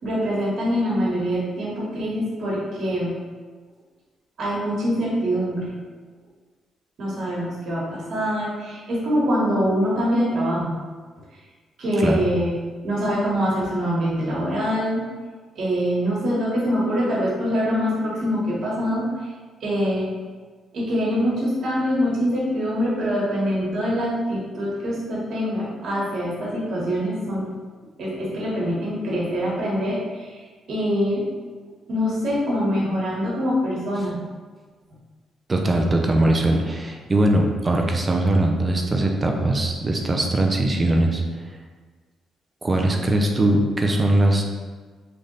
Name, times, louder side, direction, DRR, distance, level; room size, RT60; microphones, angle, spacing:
voice 1, 0.0-3.1 4.4-5.7 7.0-10.7 11.8-12.6 12.8-15.1 15.5-19.1 19.6-20.1 20.7-27.5 28.0-30.4 30.7-31.3 31.9-34.2, equal, 65° right, -5 dB, 1.4 m, -24 dB
voice 2, 35.5-41.2 42.6-44.5, right 1 dB, 25° right, 1 dB, 0.6 m, -20 dB
3.4 x 2.5 x 3.9 m, 1.4 s
cardioid pair, 90°, 0 cm